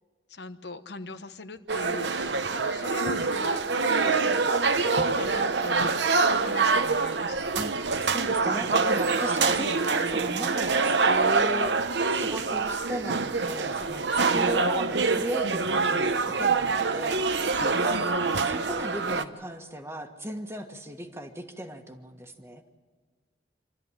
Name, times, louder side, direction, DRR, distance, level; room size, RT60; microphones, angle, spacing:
voice 1, 0.3-7.5 9.6-9.8 14.1-14.4 17.5-17.8, left 3 dB, 70° left, 10 dB, 1.1 m, -39 dB
sound 1, 1.7-19.2, right 4 dB, 80° right, 0.9 m, -25 dB
voice 2, 7.5-11.7 12.1-17.6 17.8-22.6, right 1 dB, 15° right, 5 dB, 1.5 m, -37 dB
26.5 x 13.0 x 9.8 m, 1.5 s
head